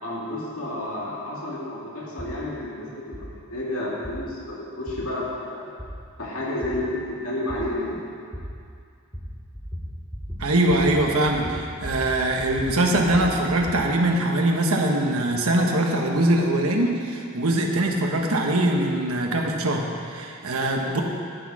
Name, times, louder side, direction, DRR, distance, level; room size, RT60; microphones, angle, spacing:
voice 1, 0.0-5.7 6.2-8.0, left 1 dB, 65° left, -5 dB, 2.5 m, -31 dB
sound 1, 2.2-2.3 3.1-3.2 4.0-4.2 4.9-5.0 5.8-5.9 6.6-6.7 7.5-7.6 8.3-8.4 9.1-9.3 9.5-9.9 10.1-10.4 10.7-11.0 11.3-12.1 12.4-13.8, equal, ahead, 2.0 m, -35 dB
voice 2, 10.4-21.0, right 1 dB, 75° right, 1 dB, 1.2 m, -22 dB
11.5 x 8.4 x 4.9 m, 2.4 s
head